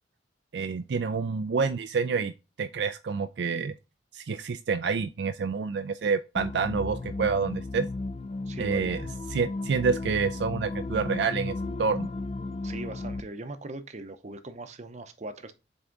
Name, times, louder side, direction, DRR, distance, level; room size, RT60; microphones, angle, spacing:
voice 1, 0.5-2.3 2.6-3.7 4.1-7.9 8.6-9.0 9.3-12.1, right 5 dB, 65° right, 0.4 m, -28 dB
sound 1, 6.4-13.2, left 2 dB, 35° left, 0.4 m, -34 dB
voice 2, 8.5-9.1 12.6-15.5, right 2 dB, 40° right, 0.7 m, -40 dB
7.9 x 3.6 x 3.9 m
head